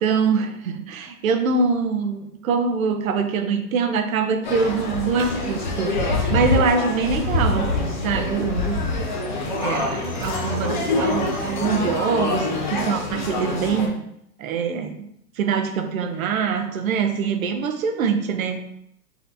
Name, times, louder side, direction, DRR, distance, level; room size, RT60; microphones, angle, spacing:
voice 1, 0.0-9.0 9.6-14.0 14.4-15.1 15.4-18.7, right 5 dB, 55° right, 7 dB, 0.7 m, -24 dB
sound 1, 4.4-13.9, left 2 dB, 35° left, 0.4 m, -25 dB
5.7 x 2.8 x 2.7 m, 0.74 s
hypercardioid pair, 155°, 49 cm